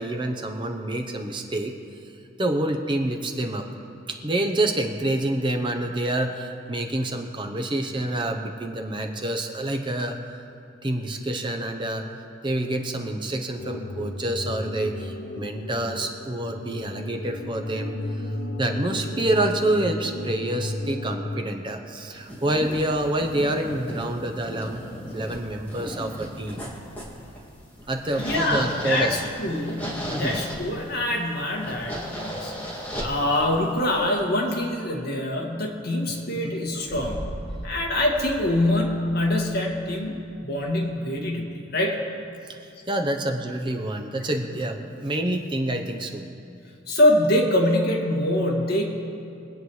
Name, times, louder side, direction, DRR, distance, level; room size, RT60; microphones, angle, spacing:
voice 1, 0.0-1.7 2.4-3.7 4.1-10.2 10.8-12.1 12.4-18.0 18.6-24.8 25.1-26.7 27.9-29.1 30.1-30.4 36.4-36.6 42.9-46.2, right 1 dB, 25° right, 4 dB, 0.7 m, -27 dB
sound 1, 13.6-21.4, left 1 dB, 70° left, 0.7 m, -34 dB
sound 2, 22.1-34.2, equal, 10° left, 2.2 m, -36 dB
voice 2, 28.2-37.3 37.6-41.5 41.7-42.0 46.9-48.8, left 1 dB, 55° left, -2 dB, 1.9 m, -24 dB
sound 3, 36.8-41.1, equal, 30° left, 3.2 m, -39 dB
23.5 x 8.7 x 3.2 m, 2.6 s
head